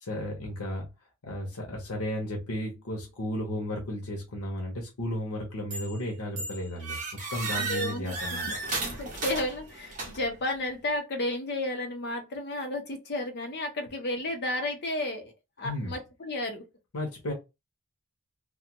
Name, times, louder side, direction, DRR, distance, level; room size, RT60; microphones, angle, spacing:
voice 1, 0.0-0.9 1.2-7.0 7.3-8.5 15.6-15.9 16.9-17.3, left 1 dB, 90° left, 0.8 m, -34 dB
sound 1, 5.7-6.0 6.4-10.4, right 3 dB, 35° right, 0.8 m, -34 dB
voice 2, 7.6-8.1 8.4-8.5 8.8-15.3 15.6-16.6, left 1 dB, 50° left, 0.7 m, -32 dB
2.3 x 2.2 x 2.8 m
head